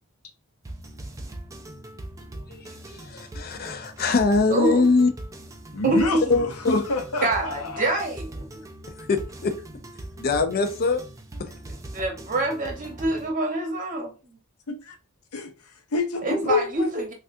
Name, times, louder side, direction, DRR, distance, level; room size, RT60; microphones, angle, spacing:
sound 1, 0.6-13.3, right 1 dB, 15° right, 0.4 m, -41 dB
voice 1, 2.9-5.1 6.3-6.8 9.1-9.5 10.2-11.0 11.4-11.5, left 3 dB, 45° left, 0.5 m, -22 dB
voice 2, 4.5-4.9 5.8-6.2 7.2-8.6 11.6-14.4 16.2-17.1, right 2 dB, 40° right, 0.9 m, -26 dB
voice 3, 5.7-8.1 14.7-15.0 15.3-16.9, left 3 dB, 85° left, 0.7 m, -28 dB
3.2 x 2.4 x 2.6 m
head